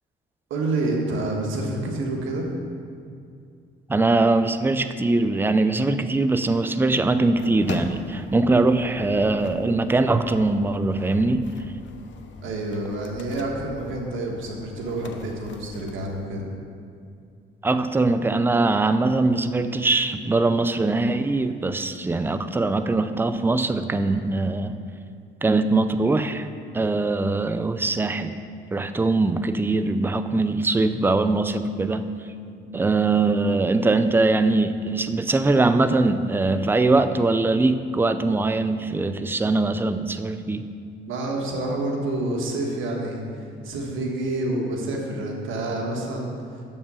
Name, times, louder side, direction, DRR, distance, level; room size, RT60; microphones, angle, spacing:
voice 1, 0.5-2.5 12.4-16.4 32.6-32.9 41.1-46.6, right 2 dB, 85° right, 0 dB, 1.4 m, -28 dB
voice 2, 3.9-11.4 17.6-24.8 25.4-26.5 26.7-28.4 28.7-32.1 32.7-40.7, right 3 dB, 10° right, 10 dB, 0.4 m, -22 dB
sound 1, 7.4-16.3, left 4 dB, 70° left, 0.7 m, -41 dB
6.7 x 5.5 x 6.9 m, 2.4 s
cardioid pair, 90°, 20 cm